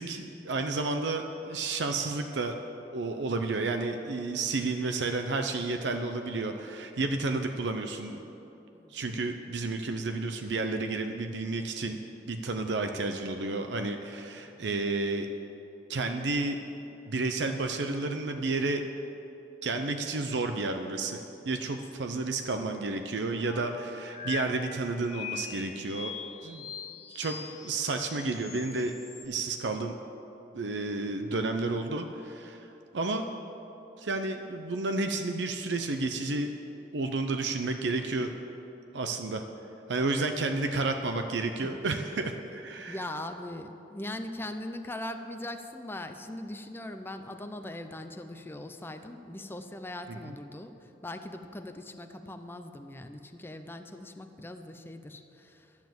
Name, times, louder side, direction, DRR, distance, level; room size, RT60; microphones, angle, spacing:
voice 1, 0.0-2.5 2.9-8.2 8.9-12.0 12.3-15.3 15.9-16.6 17.1-18.8 19.6-26.2 26.4-26.7 27.1-28.9 29.2-29.9 30.5-32.7 32.9-33.3 34.0-36.5 36.9-38.3 38.9-39.4 39.9-43.0 50.1-50.3, right 3 dB, 75° right, 6 dB, 0.6 m, -31 dB
sound 1, 23.4-29.2, left 7 dB, 35° left, 1.9 m, -42 dB
voice 2, 42.9-50.8 51.0-55.7, left 1 dB, 15° left, 7 dB, 0.5 m, -40 dB
11.5 x 7.2 x 7.7 m, 3.0 s
head